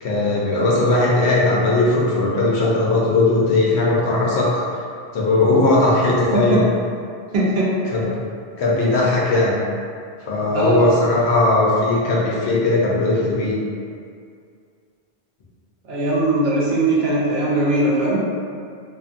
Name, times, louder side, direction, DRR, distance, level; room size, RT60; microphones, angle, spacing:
voice 1, 0.0-4.6 5.1-6.6 7.8-8.2 8.6-9.6 10.2-13.6, left 2 dB, 85° left, -4 dB, 0.9 m, -18 dB
voice 2, 7.3-7.9 10.5-10.8 15.9-18.2, right 2 dB, 70° right, -7 dB, 0.9 m, -20 dB
2.6 x 2.5 x 2.4 m, 2.3 s
omnidirectional pair, 1.1 m